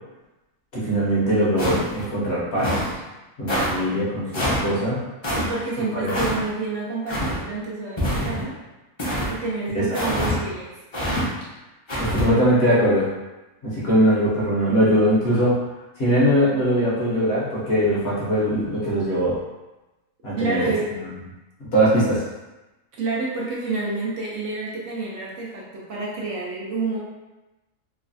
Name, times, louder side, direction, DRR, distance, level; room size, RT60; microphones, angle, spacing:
voice 1, 0.7-2.8 3.4-5.0 5.9-6.1 9.7-10.0 12.0-13.1 13.6-15.6 16.0-19.4 20.2-20.7 21.6-22.2, equal, 55° left, -7 dB, 0.9 m, -21 dB
sound 1, 1.6-2.1 2.6-2.9 3.5-3.7 4.3-4.6 5.2-5.5 6.1-6.4 7.1-7.4 8.0-8.5 9.0-9.3 9.9-10.4 10.9-11.2 11.9-12.3, equal, 35° left, 0.5 m, -25 dB
voice 2, 5.4-8.5 9.3-10.7 20.3-20.9 22.9-27.0, right 3 dB, 70° right, -4 dB, 0.8 m, -28 dB
3.1 x 2.2 x 2.5 m, 1.1 s
omnidirectional pair, 1.5 m